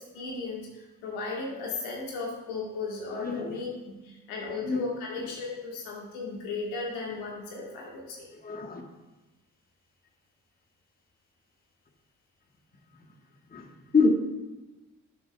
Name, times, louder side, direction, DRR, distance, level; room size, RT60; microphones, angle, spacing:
voice 1, 0.0-8.3, left 3 dB, 80° left, -2 dB, 1.5 m, -36 dB
voice 2, 3.1-3.6 4.6-4.8 8.3-8.8 13.5-14.1, left 4 dB, 25° left, 3 dB, 1.3 m, -27 dB
12.0 x 6.3 x 2.2 m, 1.1 s
hypercardioid pair, 45°, 36 cm